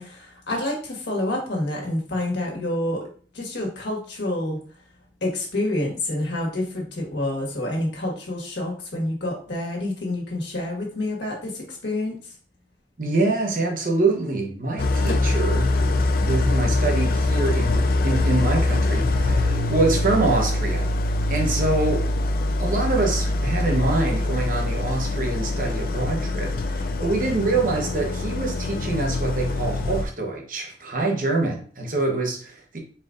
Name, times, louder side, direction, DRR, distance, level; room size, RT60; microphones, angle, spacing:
voice 1, 0.0-3.0 3.3-4.6 5.2-12.2, left 1 dB, 75° left, 1.4 m, -28 dB
voice 2, 13.0-15.8 16.2-20.9 21.3-22.1 22.6-32.8, right 2 dB, 50° right, 0.9 m, -25 dB
Idling, 14.8-30.0, left 2 dB, 55° left, 0.4 m, -23 dB
4.3 x 2.4 x 3.7 m
head